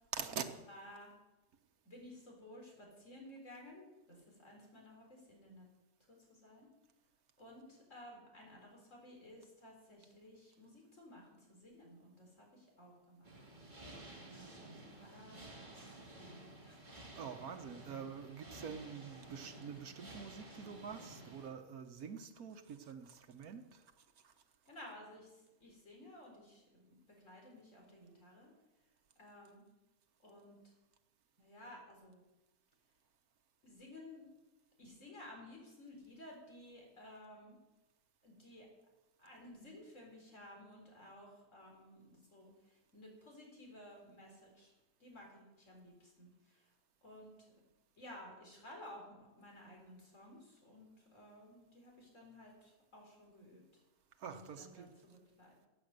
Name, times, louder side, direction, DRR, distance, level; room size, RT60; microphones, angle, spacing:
voice 1, 0.1-0.4 17.1-23.8 24.2-24.3 54.2-54.9, right 7 dB, 85° right, 6 dB, 1.5 m, -46 dB
voice 2, 0.7-1.1 1.8-5.7 6.1-6.7 7.4-13.3 14.3-16.8 24.7-28.5 29.2-29.6 30.2-30.6 31.4-32.2 33.6-34.3 34.8-37.6 38.2-38.7 39.2-44.7 45.0-46.7 47.0-47.5 48.0-53.6 54.2-55.7, left 1 dB, 60° left, 0 dB, 4.5 m, -55 dB
sound 1, 13.2-21.5, right 2 dB, 30° right, 2.7 m, -53 dB
15.5 x 9.0 x 6.6 m, 1.1 s
omnidirectional pair, 1.5 m